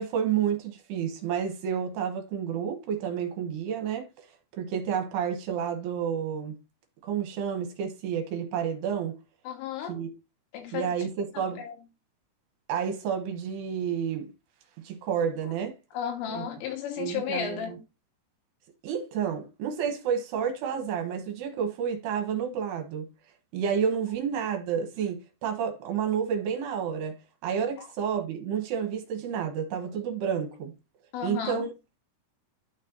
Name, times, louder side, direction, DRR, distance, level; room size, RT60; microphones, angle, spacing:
voice 1, 0.0-4.1 4.6-6.6 7.0-9.2 9.9-10.1 10.7-11.6 12.7-14.3 14.8-15.8 16.3-16.4 17.0-17.8 18.8-23.1 23.5-27.2 27.4-30.7 31.2-31.7, right 7 dB, 70° right, 2.8 m, -30 dB
voice 2, 9.5-10.0 10.5-10.9 11.6-11.8 15.9-17.8 27.8-27.9 31.1-31.7, left 9 dB, 85° left, 4.1 m, -33 dB
12.0 x 4.2 x 2.6 m
omnidirectional pair, 5.6 m